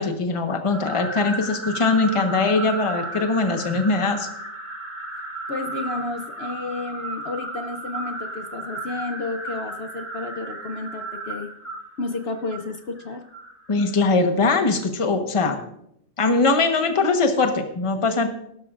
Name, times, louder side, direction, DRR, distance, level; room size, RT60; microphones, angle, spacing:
voice 1, 0.0-4.3 13.7-15.6 16.2-18.3, left 3 dB, 25° left, 5 dB, 1.2 m, -21 dB
sound 1, 0.7-14.1, right 2 dB, 10° right, 1.2 m, -34 dB
voice 2, 5.5-11.5 12.0-13.2, left 3 dB, 55° left, 6 dB, 0.9 m, -31 dB
16.5 x 12.5 x 2.5 m, 0.75 s
omnidirectional pair, 1.4 m